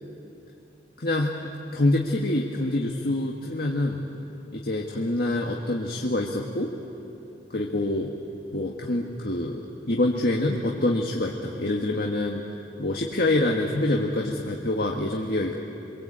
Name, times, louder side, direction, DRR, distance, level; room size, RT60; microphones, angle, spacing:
voice 1, 1.0-1.3 1.7-4.0 4.5-6.7 7.5-8.1 8.5-9.6 9.9-12.4 12.8-15.6, left 1 dB, 55° left, 0 dB, 1.6 m, -26 dB
25.5 x 23.0 x 8.8 m, 2.8 s
head